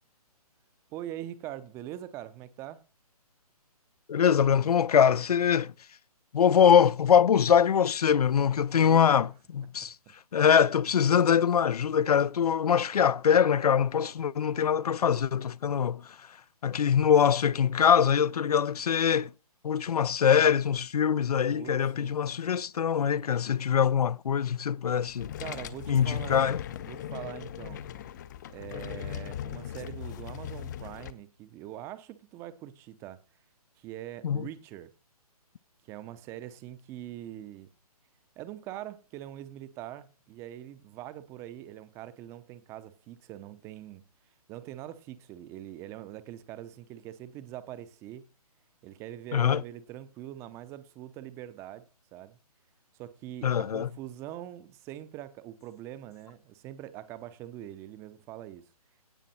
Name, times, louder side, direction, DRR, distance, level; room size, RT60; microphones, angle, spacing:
voice 1, 0.9-2.8 8.7-9.2 9.8-9.9 21.5-22.2 25.4-26.5 26.9-27.8 28.5-33.2 33.8-34.9 35.8-37.7 38.4-44.0 44.5-48.2 48.8-52.4 52.9-58.7, right 12 dB, 15° right, 0.6 m, -43 dB
voice 2, 4.1-5.7 6.3-9.9 10.3-16.2 16.6-19.3 19.6-25.3 25.9-26.6 34.2-34.4 49.3-49.6 53.4-53.9, left 8 dB, 75° left, 0.5 m, -23 dB
sound 1, 25.1-31.1, left 10 dB, 30° left, 0.7 m, -39 dB
17.0 x 5.8 x 4.2 m
hypercardioid pair, 155°, 20 cm